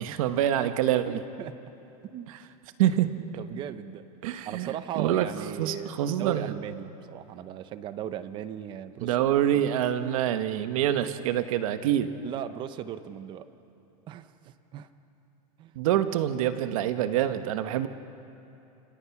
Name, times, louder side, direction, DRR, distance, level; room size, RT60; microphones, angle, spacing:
voice 1, 0.0-1.2 2.8-3.1 4.2-4.7 5.0-5.3 5.6-6.5 9.0-12.1 15.7-17.9, right 11 dB, 60° right, 9 dB, 1.3 m, -26 dB
voice 2, 1.1-1.5 2.1-2.3 3.4-4.1 4.4-9.2 9.5-9.6 12.2-13.5 14.1-14.9 15.6-15.8, right 10 dB, 25° right, 12 dB, 0.8 m, -38 dB
30.0 x 27.0 x 6.0 m, 2.9 s
supercardioid pair, 175°, 20 cm